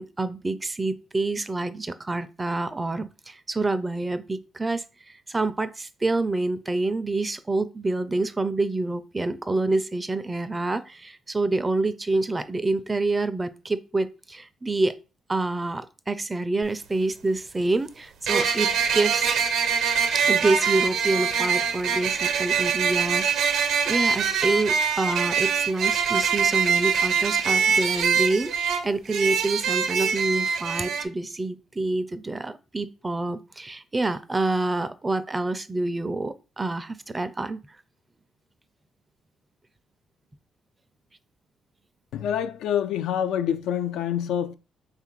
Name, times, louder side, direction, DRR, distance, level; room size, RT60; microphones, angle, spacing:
voice 1, 0.0-4.8 5.3-15.0 15.3-19.3 20.1-37.6, right 2 dB, 20° right, 0.4 m, -27 dB
sound 1, 16.6-16.7 18.3-31.0, right 6 dB, 75° right, 0.6 m, -24 dB
voice 2, 42.1-44.5, left 9 dB, 85° left, 0.3 m, -26 dB
3.3 x 2.4 x 4.5 m
cardioid pair, 90°, 0 cm